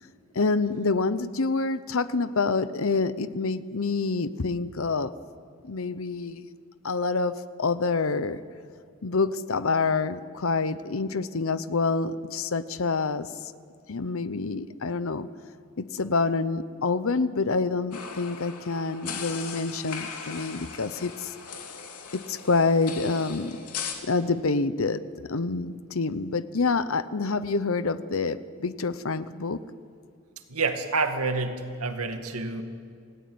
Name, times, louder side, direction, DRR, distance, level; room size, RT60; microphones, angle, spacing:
voice 1, 0.3-5.1 5.6-6.4 6.8-8.4 9.0-13.3 13.9-15.3 15.8-21.3 22.1-23.6 24.0-28.4 28.6-29.6, left 4 dB, 65° left, 14 dB, 0.8 m, -27 dB
sound 1, 17.9-23.9, left 6 dB, 90° left, 3.1 m, -38 dB
voice 2, 30.5-32.6, right 3 dB, 80° right, 6 dB, 2.1 m, -28 dB
28.0 x 18.0 x 9.5 m, 2.2 s
head